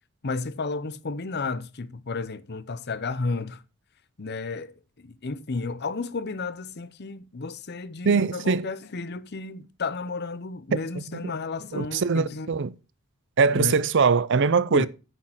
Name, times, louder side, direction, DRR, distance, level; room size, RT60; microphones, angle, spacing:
voice 1, 0.2-3.6 4.2-12.5 13.5-13.8 14.7-14.9, left 3 dB, 50° left, 0.8 m, -32 dB
voice 2, 8.0-8.7 11.7-12.7 13.4-14.9, right 5 dB, 55° right, 0.5 m, -22 dB
9.1 x 6.5 x 5.7 m
head